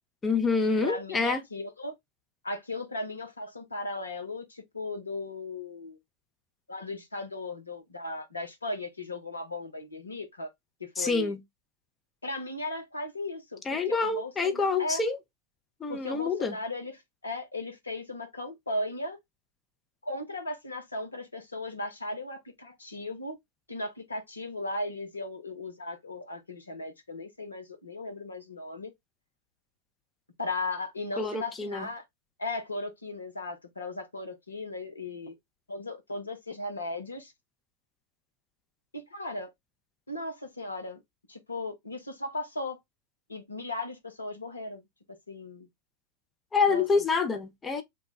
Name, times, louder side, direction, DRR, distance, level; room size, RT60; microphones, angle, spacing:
voice 1, 0.2-1.4 11.0-11.4 13.7-15.2 15.8-16.6 31.2-31.9 46.5-47.8, left 4 dB, 15° left, 0.7 m, -27 dB
voice 2, 0.8-1.9 2.4-6.0 6.7-10.5 10.8-11.3 12.2-15.0 15.9-17.0 17.2-19.2 20.0-23.4 23.7-28.9 30.4-32.0 32.4-35.3 35.7-37.3 38.9-39.5 40.1-41.0 41.3-42.8 43.3-44.8 45.3-45.7 46.7-46.8, left 2 dB, 80° left, 0.9 m, -37 dB
3.5 x 2.3 x 4.0 m
figure-of-eight pair, 90°, 0 cm